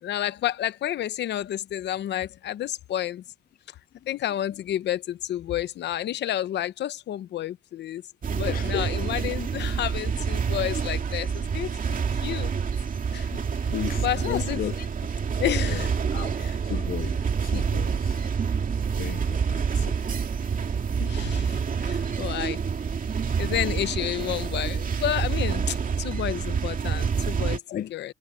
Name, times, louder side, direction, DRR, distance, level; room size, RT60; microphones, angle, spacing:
voice 1, 0.0-3.2 4.1-12.5 13.1-13.4 14.0-14.7 15.4-16.0 16.4-16.6 17.5-17.7 19.8-19.9 21.0-22.6 23.4-28.1, left 12 dB, 85° left, 0.8 m, -30 dB
sound 1, 8.2-27.6, right 6 dB, 50° right, 2.4 m, -27 dB
voice 2, 8.5-8.9 13.6-14.7 15.7-15.8 16.1-16.3 16.6-18.2 19.0-19.6 27.7-27.9, left 10 dB, 60° left, 0.4 m, -34 dB
cardioid pair, 85°, 17 cm